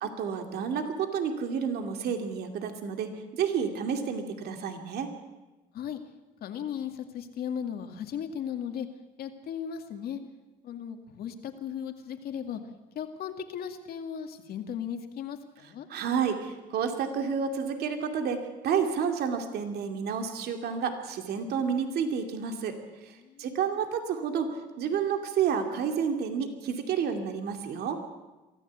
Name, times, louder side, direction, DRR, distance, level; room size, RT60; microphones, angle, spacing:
voice 1, 0.0-5.1 15.9-22.8 23.1-28.0, right 7 dB, 70° right, 5 dB, 2.6 m, -30 dB
voice 2, 6.4-8.9 9.2-10.2 10.6-12.6 13.0-15.9 23.2-23.5, left 8 dB, 65° left, 6 dB, 2.3 m, -36 dB
23.5 x 14.5 x 8.2 m, 1.1 s
cardioid pair, 110°, 17 cm